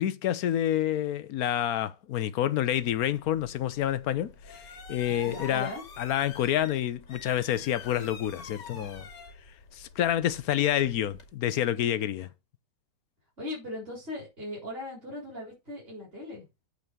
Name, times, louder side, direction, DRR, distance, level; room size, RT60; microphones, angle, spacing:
voice 1, 0.0-5.7 6.0-9.1 9.7-12.3, left 11 dB, 65° left, 1.1 m, -28 dB
sound 1, 2.7-11.3, left 4 dB, 90° left, 2.6 m, -47 dB
voice 2, 5.3-5.8 13.4-16.4, left 1 dB, 35° right, 4.5 m, -38 dB
8.3 x 4.4 x 6.7 m
omnidirectional pair, 1.9 m